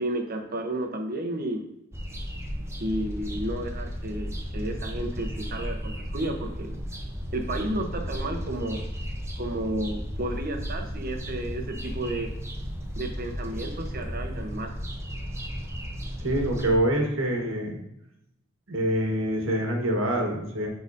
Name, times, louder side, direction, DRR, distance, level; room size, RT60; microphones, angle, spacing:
voice 1, 0.0-1.7 2.8-6.8 7.3-8.8 9.4-12.3 12.9-14.7, right 1 dB, 45° right, 4 dB, 0.9 m, -32 dB
sound 1, 1.9-16.8, equal, 15° right, 0.7 m, -34 dB
voice 2, 16.2-17.8 18.7-20.7, right 1 dB, 75° right, 1 dB, 1.4 m, -25 dB
10.5 x 4.0 x 2.6 m, 0.84 s
head